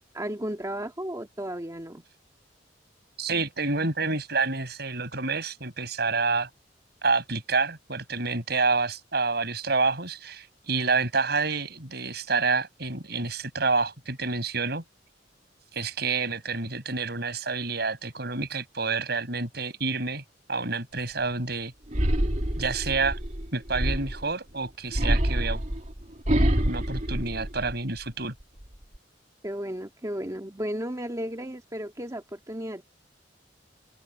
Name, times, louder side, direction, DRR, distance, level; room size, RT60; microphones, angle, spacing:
voice 1, 0.1-2.0 29.4-32.8, equal, 20° right, 2.0 m, -34 dB
voice 2, 3.2-6.5 7.0-14.8 15.7-20.2 20.5-21.7 22.6-23.2 23.5-25.6 26.6-28.3, right 4 dB, 60° right, 7.8 m, -28 dB
sound 1, 21.9-24.3 24.9-28.0 28.4-29.0, equal, 40° right, 2.4 m, -26 dB
open air
head